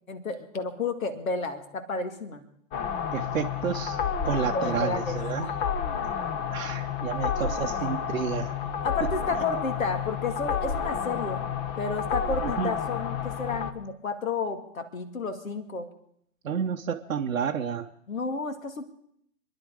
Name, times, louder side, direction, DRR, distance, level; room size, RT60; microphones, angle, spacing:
voice 1, 0.1-2.4 4.5-5.8 8.8-11.5 11.8-15.9 18.1-18.9, left 4 dB, 65° left, 8 dB, 2.2 m, -32 dB
sound 1, 2.7-13.7, left 7 dB, 25° left, 1.0 m, -30 dB
voice 2, 3.1-5.5 6.5-8.5 12.4-12.7 16.4-17.9, right 7 dB, 70° right, 2 dB, 1.0 m, -30 dB
26.5 x 11.0 x 5.0 m, 0.71 s
figure-of-eight pair, 110°, 43 cm